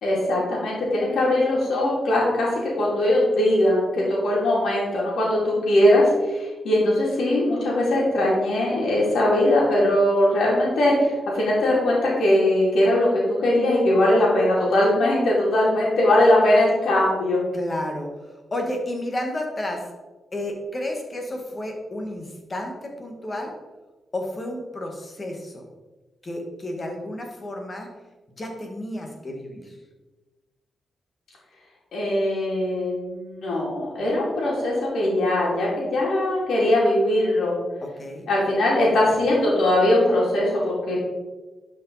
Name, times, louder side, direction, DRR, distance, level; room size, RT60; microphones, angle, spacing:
voice 1, 0.0-2.5 2.7-13.1 13.4-17.4 31.9-37.5 38.3-41.0, left 1 dB, 75° left, -5 dB, 3.1 m, -20 dB
voice 2, 17.5-18.1 18.5-19.9 20.3-23.5 24.1-25.7 26.2-27.9 28.4-29.8 37.8-38.2, left 1 dB, 25° left, 2 dB, 1.6 m, -31 dB
11.0 x 5.3 x 4.1 m, 1.2 s
wide cardioid pair, 145°, 0 cm